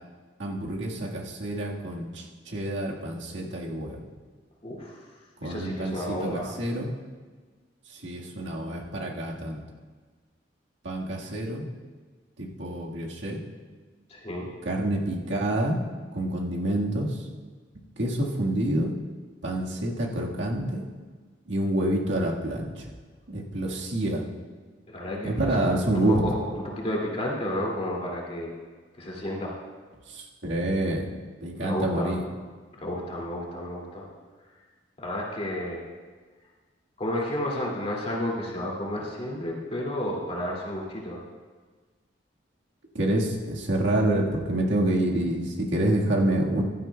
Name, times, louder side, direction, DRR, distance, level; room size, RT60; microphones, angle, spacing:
voice 1, 0.4-4.0 5.4-6.9 7.9-9.6 10.8-11.6 12.4-13.4 14.6-15.8 16.1-17.2 18.0-18.9 19.4-20.8 21.5-22.9 23.3-24.2 25.2-26.2 30.1-31.1 31.4-32.2 43.0-46.6, right 1 dB, 80° right, -2 dB, 1.7 m, -27 dB
voice 2, 4.6-5.0 5.4-6.5 14.1-14.5 24.9-28.5 29.0-29.5 31.6-32.1 32.7-34.1 35.0-35.8 37.0-41.2, left 1 dB, 35° left, -3 dB, 2.4 m, -32 dB
16.0 x 12.0 x 2.3 m, 1.4 s
head